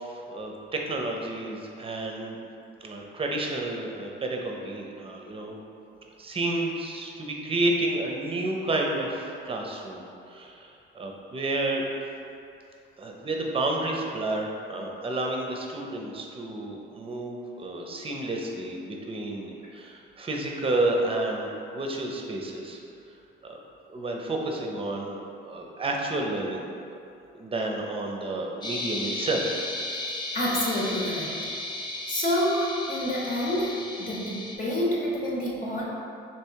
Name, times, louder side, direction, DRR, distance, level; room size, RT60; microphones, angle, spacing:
voice 1, 0.0-2.4 2.8-5.6 6.2-11.8 13.0-22.8 23.4-23.6 23.9-26.7 27.3-29.6, right 2 dB, 30° right, 1 dB, 0.6 m, -30 dB
sound 1, 28.6-34.6, left 1 dB, 20° left, 0.6 m, -34 dB
voice 2, 30.1-31.3 32.1-35.8, left 1 dB, 45° left, -6 dB, 1.0 m, -28 dB
3.3 x 3.0 x 4.6 m, 2.6 s
cardioid pair, 90°, 20 cm